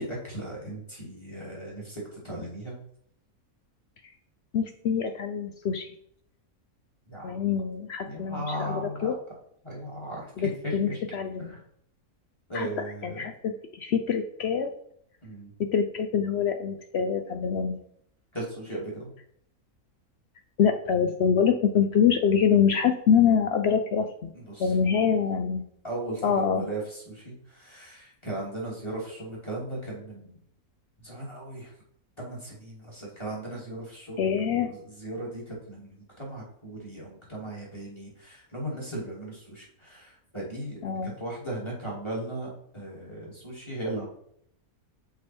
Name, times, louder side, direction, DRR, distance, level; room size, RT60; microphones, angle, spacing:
voice 1, 0.0-2.7 7.1-7.5 8.1-9.1 9.6-10.3 10.6-11.0 11.4-11.6 12.5-13.3 15.2-15.5 18.3-19.1 24.3-24.8 25.8-30.4 31.0-31.7 32.2-34.3 34.6-44.1, right 1 dB, 15° left, -5 dB, 2.5 m, -37 dB
voice 2, 4.5-5.9 7.2-9.1 10.4-11.5 12.5-12.7 13.0-14.7 15.6-17.8 20.6-24.3 24.6-25.6 26.2-26.6 34.2-34.7 40.8-41.1, left 7 dB, 70° left, 7 dB, 0.6 m, -25 dB
6.0 x 4.8 x 4.4 m, 0.67 s
omnidirectional pair, 1.6 m